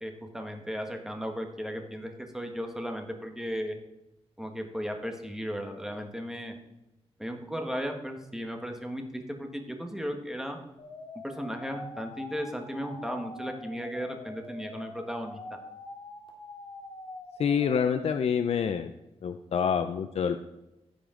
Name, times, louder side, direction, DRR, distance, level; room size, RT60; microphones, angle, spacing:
voice 1, 0.0-3.7 4.4-6.6 7.2-10.6 11.2-15.6, equal, 5° right, 4 dB, 1.4 m, -36 dB
sound 1, 10.8-18.1, left 2 dB, 50° left, 2.2 m, -44 dB
voice 2, 17.4-18.9 19.2-20.4, left 7 dB, 70° left, 9 dB, 0.4 m, -27 dB
15.0 x 5.1 x 3.8 m, 0.95 s
wide cardioid pair, 90°, 11 cm